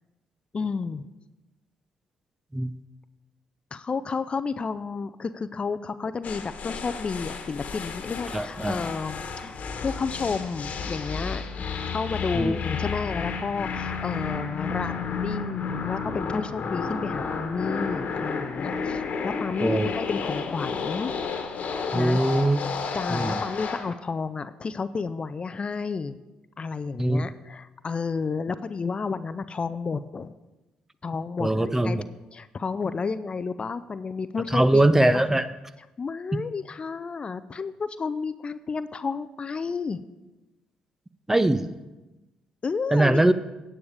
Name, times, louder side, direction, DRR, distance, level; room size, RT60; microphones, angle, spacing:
voice 1, 0.5-1.1 3.7-9.6 9.8-11.6 11.9-21.1 21.9-22.2 22.9-26.2 26.6-30.3 31.0-32.0 32.3-34.8 35.1-35.4 36.0-40.0 42.6-43.2, left 5 dB, 35° left, 13 dB, 0.4 m, -31 dB
sound 1, 6.2-23.9, left 5 dB, 55° left, 1.3 m, -32 dB
voice 2, 8.3-8.8 12.3-12.6 19.6-19.9 21.9-22.6 23.1-23.4 27.0-27.3 31.4-32.0 34.5-35.5 36.3-36.4 41.3-41.7 42.9-43.3, right 1 dB, 15° right, 13 dB, 0.6 m, -21 dB
9.6 x 8.7 x 4.9 m, 1.1 s
hypercardioid pair, 60°, 3 cm